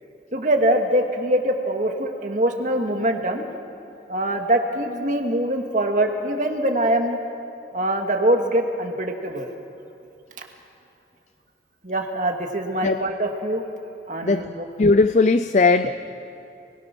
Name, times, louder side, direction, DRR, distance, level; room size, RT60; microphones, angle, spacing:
voice 1, 0.3-3.5 4.1-7.2 7.7-9.5 11.8-13.6 14.1-14.7, right 1 dB, 45° right, 3 dB, 2.1 m, -23 dB
voice 2, 14.8-16.0, left 3 dB, 40° left, 12 dB, 0.5 m, -18 dB
30.0 x 21.0 x 6.2 m, 2.8 s
head